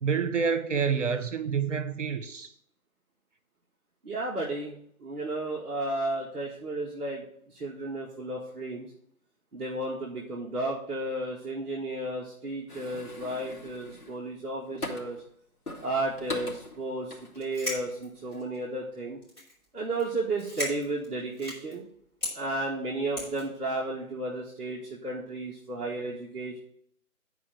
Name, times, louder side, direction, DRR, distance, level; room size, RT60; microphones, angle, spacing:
voice 1, 0.0-2.5, right 6 dB, 55° right, 0.9 m, -28 dB
voice 2, 4.0-4.8 5.0-8.9 9.5-15.2 15.8-19.2 19.7-21.8 22.3-26.6, right 2 dB, 5° right, 0.8 m, -33 dB
sound 1, 12.7-15.3 15.7-17.8 18.2-18.4, left 2 dB, 85° left, 2.9 m, -41 dB
sound 2, 17.3-18.6 19.2-19.6 19.9-20.1 20.3-21.7 22.2-22.3 23.2-23.5, left 1 dB, 10° left, 5.0 m, -36 dB
9.9 x 4.7 x 7.9 m
figure-of-eight pair, 150°, 44 cm